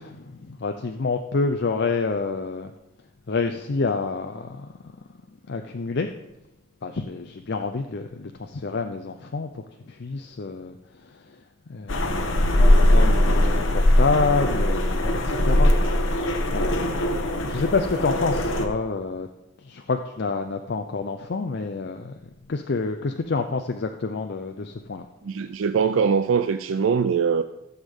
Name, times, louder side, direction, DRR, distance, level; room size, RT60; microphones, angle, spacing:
voice 1, 0.0-2.7 3.3-4.7 5.5-6.1 6.8-10.7 11.0-11.4 11.7-19.3 19.6-22.2 22.5-25.1, left 4 dB, 55° left, 5 dB, 0.5 m, -28 dB
sound 1, 11.9-18.7, left 1 dB, 75° left, 1.0 m, -20 dB
voice 2, 25.2-27.4, right 6 dB, 75° right, 10 dB, 0.4 m, -22 dB
15.0 x 7.2 x 3.6 m, 0.93 s
head